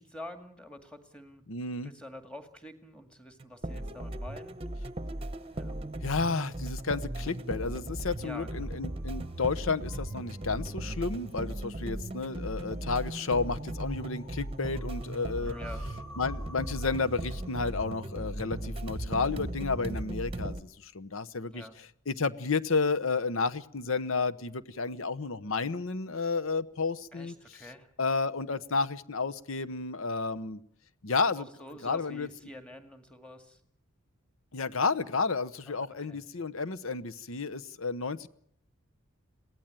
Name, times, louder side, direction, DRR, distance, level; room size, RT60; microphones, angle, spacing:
voice 1, 0.0-1.4 1.8-4.6 5.5-5.8 8.2-8.8 15.4-15.9 21.5-21.8 27.1-27.9 31.4-33.6 35.7-36.2, left 1 dB, 5° left, 7 dB, 2.1 m, -47 dB
voice 2, 1.5-1.9 6.0-15.5 16.2-21.6 22.1-27.3 28.0-30.6 31.0-31.5 31.8-32.3 34.5-38.3, left 4 dB, 70° left, 14 dB, 1.0 m, -31 dB
sound 1, 3.4-20.6, right 1 dB, 25° right, 1.0 m, -37 dB
sound 2, 8.1-19.2, equal, 25° left, 5.4 m, -54 dB
22.5 x 17.0 x 9.0 m, 0.67 s
head